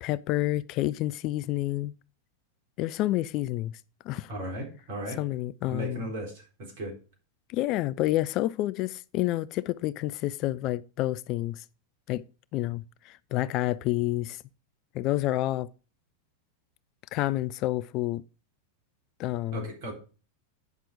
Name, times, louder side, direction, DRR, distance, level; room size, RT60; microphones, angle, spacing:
voice 1, 0.0-1.9 2.8-3.7 4.1-4.3 5.2-6.1 7.5-11.6 12.1-12.2 12.5-14.4 14.9-15.7 17.1-18.2 19.2-19.7, left 16 dB, 40° left, 0.3 m, -29 dB
voice 2, 4.3-5.2 5.7-6.3 6.8-6.9 19.5-19.9, right 1 dB, 50° right, 3.8 m, -35 dB
9.5 x 5.9 x 4.9 m
figure-of-eight pair, 90°, 0 cm